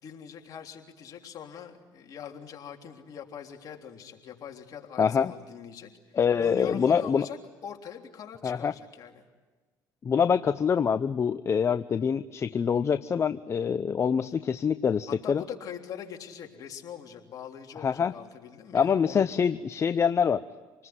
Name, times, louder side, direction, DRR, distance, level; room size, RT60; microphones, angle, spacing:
voice 1, 0.0-9.3 15.1-19.2, left 8 dB, 55° left, 2 dB, 3.4 m, -42 dB
voice 2, 5.0-5.3 6.2-7.3 8.4-8.7 10.0-15.4 17.8-18.1 18.7-20.4, left 7 dB, 40° left, 12 dB, 0.8 m, -25 dB
27.5 x 20.0 x 9.6 m, 1.3 s
supercardioid pair, 80°, 8 cm